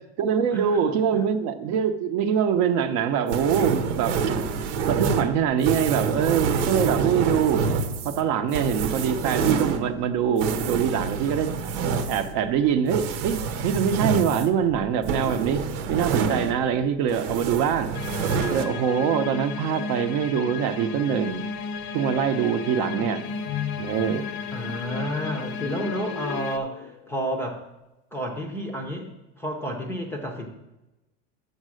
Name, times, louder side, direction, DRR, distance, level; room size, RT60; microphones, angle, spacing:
voice 1, 0.2-4.2 4.9-7.6 8.0-11.5 11.9-15.6 15.9-17.9 18.5-21.4 21.9-23.3 23.8-24.3, right 8 dB, 50° right, 9 dB, 0.7 m, -24 dB
sound 1, 3.3-16.8 17.1-18.6, right 5 dB, 90° right, 1.0 m, -27 dB
sound 2, 17.9-26.6, left 5 dB, 45° left, 0.6 m, -34 dB
sound 3, 21.3-27.4, left 10 dB, 90° left, 0.6 m, -39 dB
voice 2, 24.5-27.6 28.1-29.1 29.4-30.5, equal, 5° left, 3 dB, 0.5 m, -31 dB
7.1 x 6.5 x 6.3 m, 0.97 s
cardioid pair, 175°, 35 cm